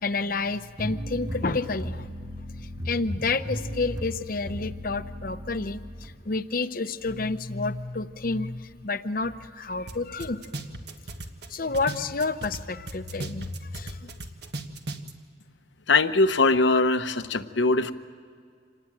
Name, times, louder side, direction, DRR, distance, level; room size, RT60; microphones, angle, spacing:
voice 1, 0.0-2.1 2.6-10.5 11.5-14.1, left 3 dB, 50° left, 11 dB, 0.8 m, -30 dB
sound 1, 0.8-6.1, equal, 20° right, 1.8 m, -36 dB
sound 2, 9.9-10.0 10.2-12.6 12.9-15.1, right 2 dB, 60° right, 1.5 m, -36 dB
voice 2, 15.9-17.9, left 3 dB, 75° left, 10 dB, 1.0 m, -21 dB
26.5 x 19.0 x 9.0 m, 2.2 s
head